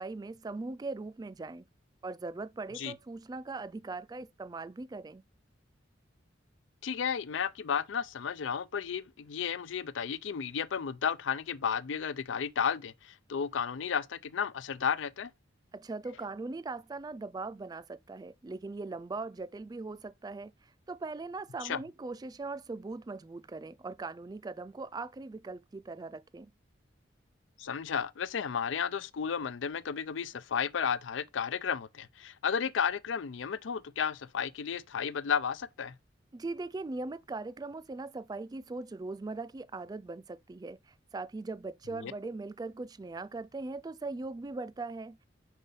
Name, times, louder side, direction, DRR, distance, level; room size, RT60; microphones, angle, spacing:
voice 1, 0.0-1.6 2.0-5.2 15.7-26.5 36.3-45.3, right 3 dB, 20° right, 0.3 m, -40 dB
voice 2, 6.8-15.3 21.6-21.8 27.6-35.9 41.9-42.1, left 7 dB, 80° left, 0.5 m, -33 dB
5.5 x 4.0 x 5.4 m
head